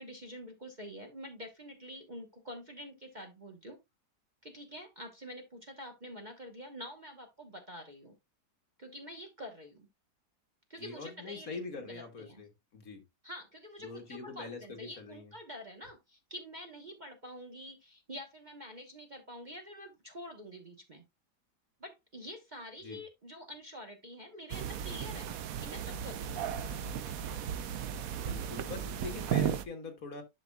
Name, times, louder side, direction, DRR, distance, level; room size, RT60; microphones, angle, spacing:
voice 1, 0.0-3.8 4.4-8.1 8.8-9.9 10.7-12.4 13.2-21.0 21.8-25.3 25.6-26.6, equal, 30° right, 1.1 m, -47 dB
voice 2, 10.8-13.0 13.8-15.3 22.8-23.0 28.3-30.2, left 4 dB, 55° left, 1.7 m, -43 dB
sound 1, 24.5-29.6, right 9 dB, 65° right, 1.0 m, -35 dB
11.0 x 5.5 x 2.3 m
omnidirectional pair, 1.9 m